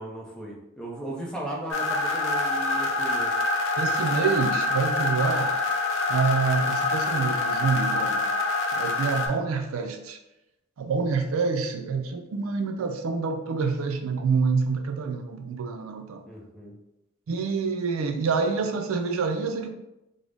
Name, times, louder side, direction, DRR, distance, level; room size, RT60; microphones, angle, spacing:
voice 1, 0.0-3.3 16.3-16.7, right 1 dB, 5° left, -3 dB, 0.6 m, -36 dB
sound 1, 1.7-9.3, left 3 dB, 80° left, 0.6 m, -26 dB
voice 2, 3.8-5.5 6.1-8.2 8.8-10.2 10.8-16.2 17.3-19.7, right 5 dB, 85° right, 5 dB, 0.4 m, -27 dB
3.7 x 2.1 x 3.4 m, 0.90 s
head